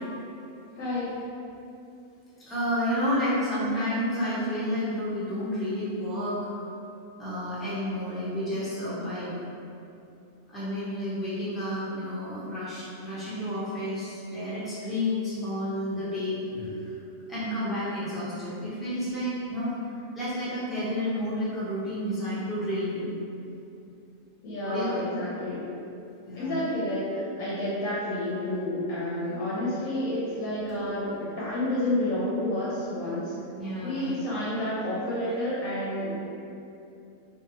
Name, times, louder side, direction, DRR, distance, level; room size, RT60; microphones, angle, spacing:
voice 1, 0.8-1.2 24.4-25.7 26.3-33.3 33.8-36.2, left 1 dB, 80° left, -9 dB, 1.0 m, -30 dB
voice 2, 2.4-6.4 7.2-9.3 10.5-16.7 17.3-19.7 20.1-23.1 24.6-25.1 26.3-26.6 33.6-34.1, left 1 dB, ahead, -12 dB, 0.5 m, -30 dB
2.7 x 2.4 x 2.8 m, 2.7 s
omnidirectional pair, 1.5 m